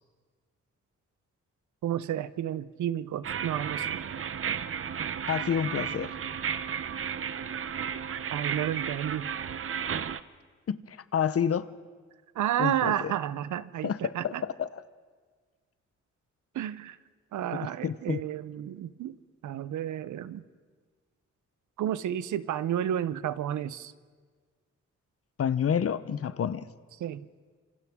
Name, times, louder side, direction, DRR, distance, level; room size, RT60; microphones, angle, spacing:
voice 1, 1.8-4.0 8.3-9.3 12.3-14.4 16.5-17.0 17.3-19.2 19.4-20.4 21.8-23.9 27.0-27.3, right 11 dB, 90° right, 15 dB, 0.7 m, -31 dB
sound 1, 3.2-10.2, right 7 dB, 45° right, 0.7 m, -33 dB
voice 2, 5.3-6.1 10.7-11.7 12.6-12.9 13.8-14.0 14.2-14.7 17.8-18.2 25.4-26.7, left 8 dB, 55° left, 15 dB, 0.8 m, -28 dB
27.0 x 26.5 x 3.7 m, 1.6 s
cardioid pair, 80°, 29 cm